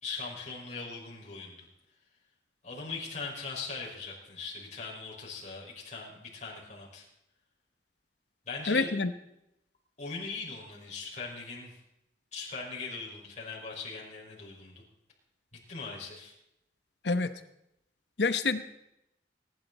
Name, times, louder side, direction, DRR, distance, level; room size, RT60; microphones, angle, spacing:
voice 1, 0.0-1.7 2.6-7.1 8.4-8.9 10.0-11.8 12.3-14.8 15.7-16.3, left 4 dB, 45° left, -4 dB, 5.5 m, -40 dB
voice 2, 8.7-9.1 17.0-17.3 18.2-18.6, left 3 dB, 75° left, 11 dB, 1.1 m, -27 dB
24.5 x 11.5 x 4.2 m, 0.83 s
head